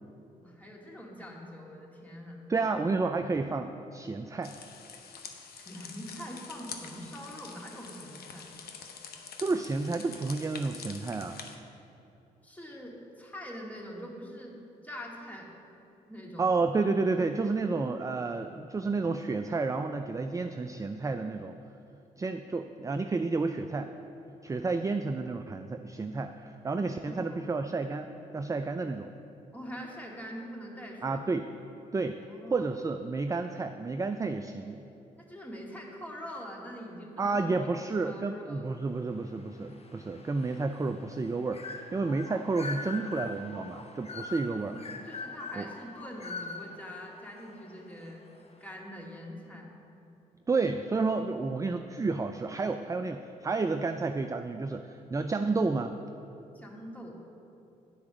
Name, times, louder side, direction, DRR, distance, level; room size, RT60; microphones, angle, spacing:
voice 1, 0.4-2.4 5.4-8.5 12.4-14.6 14.8-15.5 16.1-16.5 27.0-27.5 29.5-31.2 32.3-32.7 35.2-38.7 44.5-48.2 48.6-49.7 56.5-57.2, equal, 10° left, -2 dB, 2.1 m, -44 dB
voice 2, 2.5-4.5 9.4-11.4 16.4-21.6 22.2-23.9 24.4-29.1 31.0-31.5 31.9-32.2 32.5-34.8 37.2-44.8 45.6-45.7 50.5-55.9, right 3 dB, 20° right, 8 dB, 0.4 m, -31 dB
sound 1, 4.4-11.6, left 6 dB, 65° left, 0.8 m, -46 dB
sound 2, 39.1-48.1, left 3 dB, 35° left, 1.0 m, -43 dB
9.3 x 4.7 x 6.2 m, 2.8 s
hypercardioid pair, 50°, 17 cm